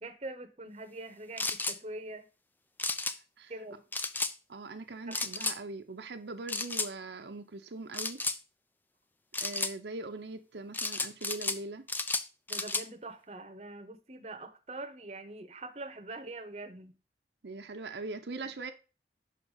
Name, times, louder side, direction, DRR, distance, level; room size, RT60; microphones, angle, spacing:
voice 1, 0.0-2.3 3.5-3.8 5.1-5.2 12.5-17.0, right 2 dB, 35° right, 0.9 m, -43 dB
sound 1, 1.4-1.8 2.8-3.2 3.9-4.3 5.1-5.6 6.5-6.9 7.9-8.4 9.3-9.7 10.7-11.6 11.9-12.9, left 3 dB, 10° left, 0.3 m, -33 dB
voice 2, 3.0-3.5 4.5-8.2 9.4-11.9 17.4-18.7, right 3 dB, 80° right, 0.7 m, -41 dB
5.8 x 4.7 x 5.5 m
head